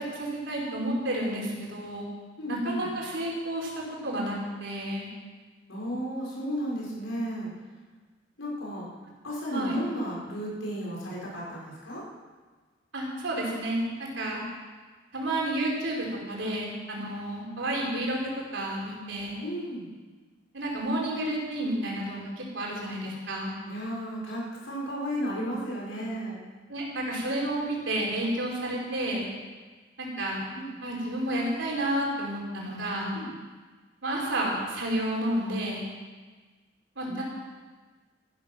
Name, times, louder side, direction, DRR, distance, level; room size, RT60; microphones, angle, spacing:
voice 1, 0.0-2.0 2.5-3.7 4.0-5.1 9.5-9.8 12.9-14.4 15.1-19.4 20.5-23.5 26.7-29.2 30.0-30.4 30.8-33.2 34.0-35.9 37.0-37.2, right 1 dB, 65° right, -3 dB, 4.9 m, -31 dB
voice 2, 2.4-2.9 5.7-7.5 8.4-8.9 9.2-12.0 19.4-19.9 23.6-26.4 30.5-30.7 33.1-33.3 37.0-37.2, equal, 85° left, -5 dB, 5.7 m, -34 dB
14.5 x 13.0 x 6.1 m, 1.4 s
head